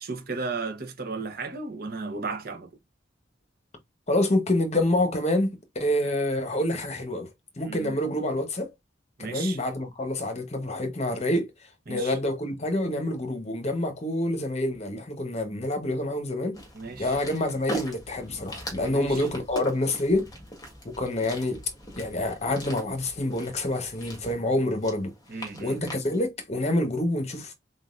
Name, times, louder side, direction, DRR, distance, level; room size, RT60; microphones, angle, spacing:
voice 1, 0.0-2.7 7.7-7.9 9.2-9.6 11.9-12.2 16.7-17.2 18.9-19.3 25.3-25.8, right 4 dB, 55° right, 1.0 m, -35 dB
voice 2, 4.1-7.3 7.6-8.7 9.2-11.5 11.9-16.6 17.0-20.3 20.8-21.6 22.0-25.1 25.6-27.5, left 1 dB, 35° left, 1.1 m, -27 dB
sound 1, 16.5-26.2, equal, 20° left, 1.6 m, -41 dB
3.9 x 3.8 x 2.5 m
head